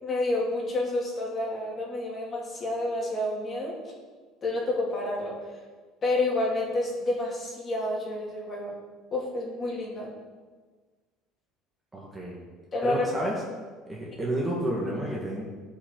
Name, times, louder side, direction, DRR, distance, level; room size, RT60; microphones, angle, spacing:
voice 1, 0.0-3.7 4.4-5.3 6.0-8.7 9.1-10.1 12.7-13.1, left 2 dB, 30° left, -3 dB, 2.6 m, -29 dB
voice 2, 11.9-12.4 12.8-13.3 13.9-15.4, right 1 dB, 15° right, -3 dB, 1.7 m, -30 dB
15.0 x 5.5 x 3.9 m, 1.4 s
cardioid pair, 145°, 0 cm